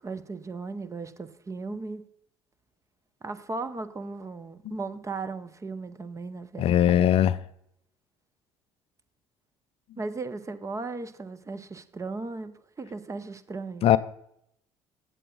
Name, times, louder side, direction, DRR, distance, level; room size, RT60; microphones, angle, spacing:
voice 1, 0.0-2.0 3.2-7.0 10.0-13.9, right 3 dB, 25° right, 0.6 m, -36 dB
voice 2, 6.6-7.3 13.8-14.0, left 11 dB, 50° left, 0.4 m, -19 dB
7.7 x 7.7 x 3.8 m
hypercardioid pair, 60°, 13 cm